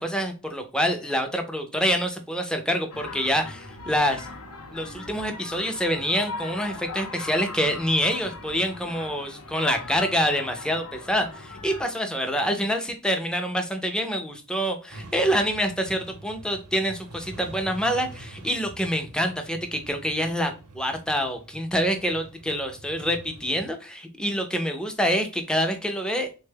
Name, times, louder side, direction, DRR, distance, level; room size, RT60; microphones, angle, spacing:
voice 1, 0.0-4.3 4.7-26.3, equal, 5° left, 5 dB, 0.4 m, -26 dB
sound 1, 2.9-11.8, left 3 dB, 75° left, 0.7 m, -39 dB
sound 2, 14.9-23.7, right 2 dB, 80° right, 0.7 m, -45 dB
3.4 x 2.2 x 3.2 m, 0.35 s
head